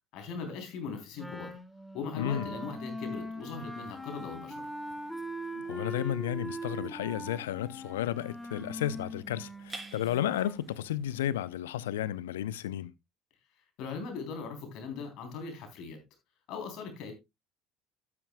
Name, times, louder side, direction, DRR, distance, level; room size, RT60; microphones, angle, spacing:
voice 1, 0.1-1.6 1.9-4.6 13.8-16.0 16.5-17.1, left 5 dB, 60° left, 3.4 m, -39 dB
Wind instrument woodwind instrument, 1.2-10.6, equal, ahead, 1.5 m, -41 dB
voice 2, 2.1-2.5 5.5-12.9, left 11 dB, 75° left, 0.5 m, -33 dB
sound 1, 3.7-11.5, right 2 dB, 20° right, 4.2 m, -53 dB
12.5 x 9.6 x 2.3 m
figure-of-eight pair, 60°, 0 cm